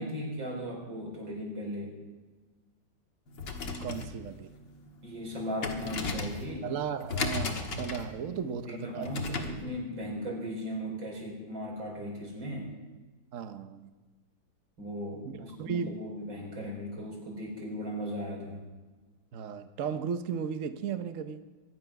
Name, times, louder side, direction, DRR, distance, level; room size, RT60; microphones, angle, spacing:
voice 1, 0.0-2.0 5.0-6.7 8.7-12.7 14.8-18.7, equal, 85° right, -2 dB, 5.5 m, -37 dB
sound 1, 3.3-9.6, left 4 dB, 70° left, 2.2 m, -37 dB
voice 2, 3.8-4.5 6.6-9.2 13.3-13.9 15.2-15.3 15.6-15.9 19.3-21.4, right 7 dB, 55° right, 9 dB, 1.0 m, -35 dB
23.5 x 10.0 x 5.9 m, 1.3 s
omnidirectional pair, 2.0 m